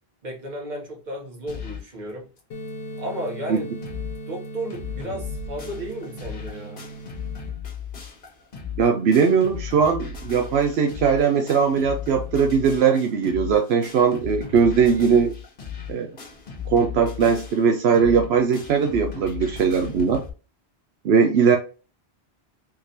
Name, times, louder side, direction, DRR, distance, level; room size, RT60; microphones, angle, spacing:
voice 1, 0.2-2.3 3.0-3.7 4.3-6.8, right 1 dB, 45° right, 0 dB, 1.3 m, -33 dB
sound 1, 1.5-1.9 2.4-2.5 2.7-2.8 3.3-3.4 3.6-4.2 4.4-20.3, left 7 dB, 55° left, 1.1 m, -36 dB
sound 2, 2.5-7.5, right 1 dB, 80° left, 1.0 m, -38 dB
voice 2, 8.8-15.3 15.9-16.1 16.7-20.2 21.0-21.6, right 6 dB, 80° right, 4 dB, 0.8 m, -20 dB
3.6 x 3.2 x 2.7 m, 0.33 s
omnidirectional pair, 1.1 m